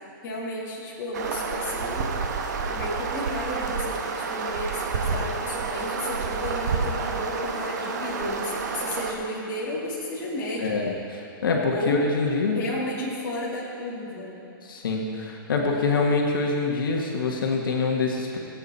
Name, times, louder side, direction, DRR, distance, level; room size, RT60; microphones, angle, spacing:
voice 1, 0.2-2.3 2.6-10.8 11.7-12.1 12.5-14.3, left 1 dB, 20° left, -6 dB, 2.4 m, -33 dB
sound 1, 1.1-9.1, right 5 dB, 50° right, 1.3 m, -29 dB
voice 2, 10.6-10.9 11.4-12.6 14.7-18.4, left 4 dB, 70° left, 0 dB, 1.7 m, -25 dB
21.0 x 8.6 x 4.3 m, 2.8 s
hypercardioid pair, 170°, 12 cm